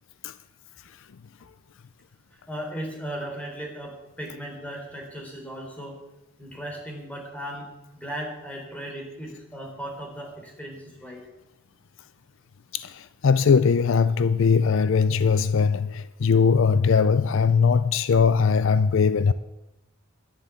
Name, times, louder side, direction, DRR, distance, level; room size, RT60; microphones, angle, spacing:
voice 1, 2.5-6.0 6.4-7.7 7.9-11.2, equal, 5° left, 3.6 m, -36 dB
voice 2, 12.7-19.3, left 5 dB, 60° left, 0.4 m, -20 dB
11.0 x 10.5 x 8.2 m
head